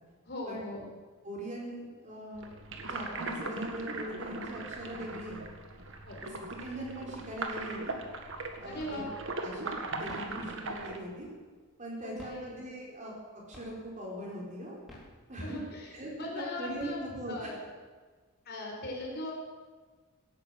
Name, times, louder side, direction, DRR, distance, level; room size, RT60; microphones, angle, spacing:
voice 1, 0.3-0.9 6.0-6.2 8.6-9.1 12.0-12.6 15.4-17.0 17.3-17.6 18.4-19.3, left 1 dB, 50° left, -1 dB, 4.5 m, -39 dB
voice 2, 1.2-5.4 6.2-8.0 8.6-9.0 9.4-11.3 11.8-13.1 13.5-14.8 15.3-15.6 15.9-17.5, right 1 dB, 35° right, -2 dB, 4.5 m, -41 dB
sound 1, 2.4-11.0, right 2 dB, 60° right, 1.8 m, -39 dB
sound 2, 7.4-7.9 8.2-9.2 9.9-11.7 12.1-13.2 13.5-14.1 14.7-15.7 16.2-16.3 16.6-17.5, equal, ahead, 4.1 m, -53 dB
17.5 x 10.5 x 7.7 m, 1.4 s
head